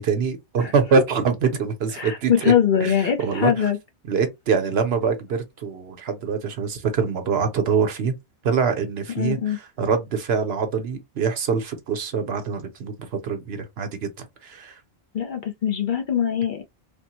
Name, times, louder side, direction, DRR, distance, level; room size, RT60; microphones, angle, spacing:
voice 1, 0.0-2.5 2.8-3.7 4.1-8.1 8.4-14.7, right 6 dB, 65° right, 0.9 m, -24 dB
voice 2, 0.6-1.1 1.9-3.8 9.1-9.6 15.1-16.6, left 9 dB, 55° left, 0.7 m, -22 dB
3.4 x 2.1 x 2.9 m
omnidirectional pair, 1.2 m